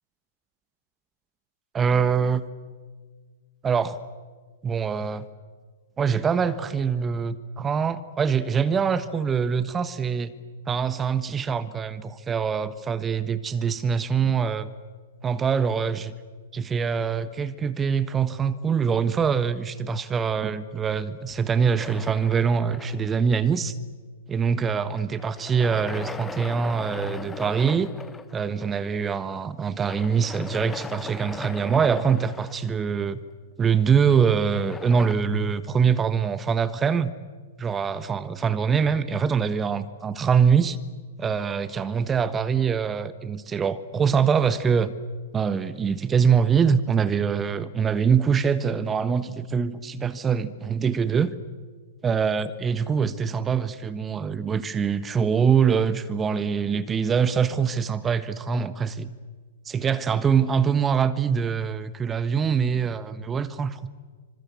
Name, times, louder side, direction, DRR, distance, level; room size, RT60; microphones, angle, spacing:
voice 1, 1.7-2.4 3.6-4.0 4.6-5.3 6.0-10.3 10.7-14.7 15.2-16.1 16.5-23.7 24.3-27.9 28.3-33.2 33.6-37.1 37.6-40.8 41.2-44.9 45.3-51.3 52.0-59.1 59.7-63.9, right 6 dB, 15° right, 14 dB, 1.3 m, -24 dB
sound 1, 21.8-23.3 25.2-28.4 29.8-33.0 34.5-35.2, left 4 dB, 10° left, 1.1 m, -39 dB
27.0 x 25.5 x 8.2 m, 1.5 s
figure-of-eight pair, 110°, 0 cm